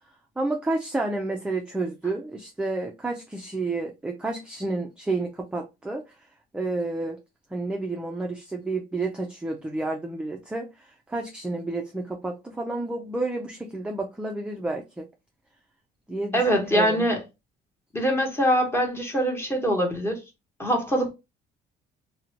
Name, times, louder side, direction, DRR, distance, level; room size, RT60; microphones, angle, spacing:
voice 1, 0.4-6.0 6.5-7.2 7.5-15.1 16.1-17.0, right 2 dB, 5° right, 0.4 m, -30 dB
voice 2, 16.3-17.2 17.9-20.2 20.6-21.1, equal, 15° left, 1.0 m, -23 dB
2.7 x 2.1 x 2.7 m
cardioid pair, 110°, 17 cm